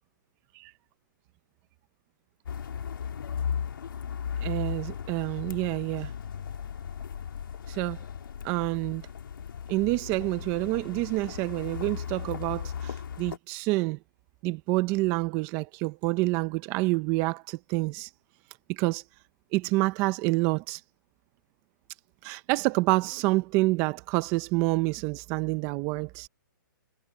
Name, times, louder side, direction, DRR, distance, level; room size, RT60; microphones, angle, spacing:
sound 1, 2.5-13.4, left 7 dB, 80° left, 3.1 m, -36 dB
voice 1, 4.4-6.1 7.7-8.0 8.4-9.0 9.7-14.0 14.4-18.1 18.7-19.0 19.5-20.8 22.2-26.3, right 21 dB, 25° right, 0.7 m, -28 dB
hypercardioid pair, 160°, 11 cm